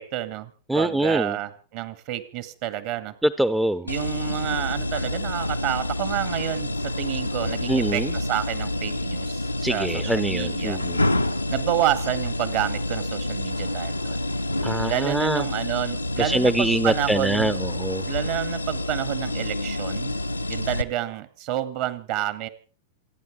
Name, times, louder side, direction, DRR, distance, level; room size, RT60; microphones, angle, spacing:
voice 1, 0.0-3.1 3.8-10.8 11.5-14.2 14.8-17.5 18.0-20.2 20.5-22.5, right 13 dB, 45° right, 13 dB, 1.9 m, -29 dB
voice 2, 0.7-1.4 3.2-3.9 7.7-8.1 9.6-11.1 14.6-15.4 16.2-18.0, right 1 dB, 5° right, 14 dB, 0.8 m, -24 dB
sound 1, 3.9-20.8, left 1 dB, 90° left, 0.9 m, -28 dB
27.5 x 10.0 x 4.9 m, 0.39 s
figure-of-eight pair, 95°, 0 cm